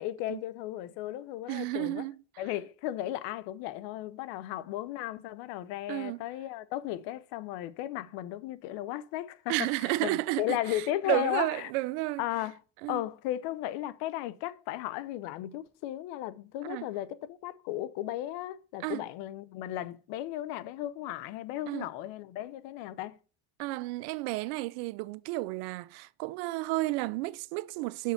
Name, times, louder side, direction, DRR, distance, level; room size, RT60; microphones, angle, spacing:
voice 1, 0.0-2.0 2.4-9.7 10.0-11.7 12.2-12.6 12.9-23.2, left 14 dB, 80° left, 0.8 m, -35 dB
voice 2, 1.5-2.2 5.9-6.2 9.5-12.2 12.8-13.0 16.6-16.9 18.8-19.0 21.7-21.9 23.6-28.1, right 19 dB, 85° right, 0.6 m, -32 dB
6.6 x 4.6 x 5.7 m
supercardioid pair, 95°, 42 cm